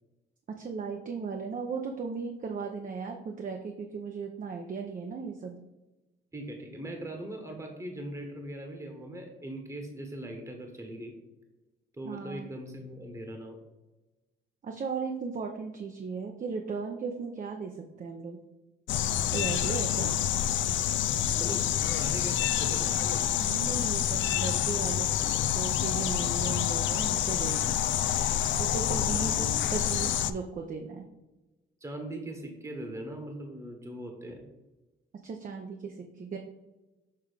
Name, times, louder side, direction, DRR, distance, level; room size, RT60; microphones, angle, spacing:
voice 1, 0.6-5.6 12.1-12.5 14.6-18.4 19.3-20.1 23.4-25.1 25.5-27.8 28.6-31.1 35.2-36.4, right 5 dB, 40° right, 3 dB, 0.7 m, -36 dB
voice 2, 6.3-11.2 11.9-13.6 20.0-20.1 21.4-23.2 28.9-29.6 31.8-34.4, right 1 dB, 15° right, 3 dB, 1.2 m, -40 dB
sound 1, 18.9-30.3, left 10 dB, 75° left, 0.4 m, -28 dB
6.8 x 3.5 x 5.0 m, 1.1 s
cardioid pair, 90°, 20 cm